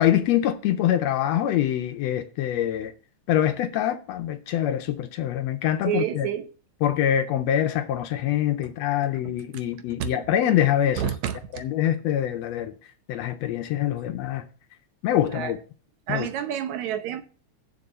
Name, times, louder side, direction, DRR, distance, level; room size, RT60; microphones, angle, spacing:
voice 1, 0.0-2.9 3.3-6.3 6.8-11.0 11.5-12.7 13.1-14.4 15.0-15.6 16.1-16.3, left 11 dB, 75° left, 1.7 m, -24 dB
voice 2, 5.9-6.5 9.2-9.3 10.0-10.1 11.0-11.6 15.2-15.5 16.1-17.2, right 10 dB, 75° right, 2.2 m, -29 dB
7.0 x 7.0 x 6.7 m
omnidirectional pair, 3.3 m